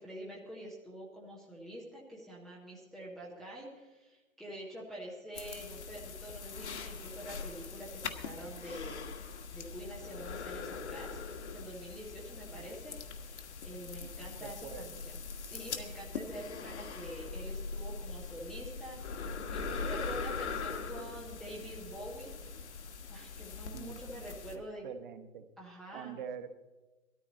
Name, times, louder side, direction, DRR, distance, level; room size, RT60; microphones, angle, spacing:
voice 1, 0.0-9.0 9.5-11.2 11.5-22.3 23.1-24.8 25.6-26.2, right 1 dB, ahead, -6 dB, 0.5 m, -46 dB
sound 1, 5.4-24.6, left 4 dB, 55° left, 1.5 m, -42 dB
voice 2, 14.0-15.0 23.7-24.0 24.5-25.5 25.9-26.5, right 7 dB, 40° right, 9 dB, 1.1 m, -45 dB
19.0 x 13.5 x 4.0 m, 1.1 s
figure-of-eight pair, 125°, 40 cm